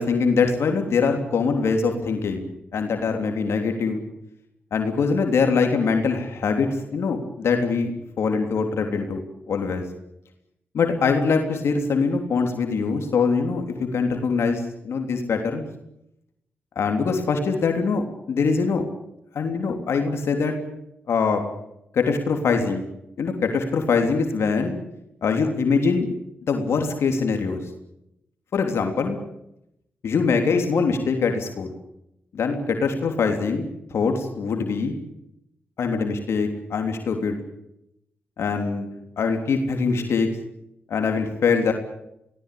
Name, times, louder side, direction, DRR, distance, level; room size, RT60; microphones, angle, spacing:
voice 1, 0.0-2.5 2.7-4.0 4.7-7.9 8.2-9.2 9.5-9.8 10.7-15.6 16.7-18.8 19.3-20.5 21.1-21.5 21.9-22.8 23.2-24.8 25.2-26.1 26.5-27.6 28.5-29.2 30.0-31.7 32.3-34.9 35.8-37.4 38.4-38.9 39.2-40.3 40.9-41.7, left 5 dB, 80° left, 4 dB, 3.4 m, -23 dB
24.0 x 18.0 x 8.6 m, 0.81 s
cardioid pair, 50°, 4 cm